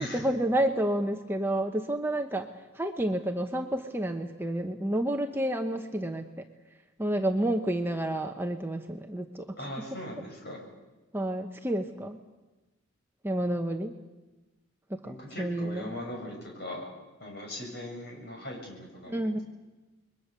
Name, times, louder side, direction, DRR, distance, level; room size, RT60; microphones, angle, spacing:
voice 1, 0.0-6.5 7.0-9.6 11.1-12.2 13.2-13.9 14.9-15.9 19.1-19.4, right 1 dB, 10° right, 4 dB, 0.9 m, -30 dB
voice 2, 9.6-10.6 15.0-16.9 17.2-19.4, left 1 dB, 50° left, 0 dB, 7.4 m, -40 dB
29.0 x 22.0 x 6.8 m, 1.1 s
head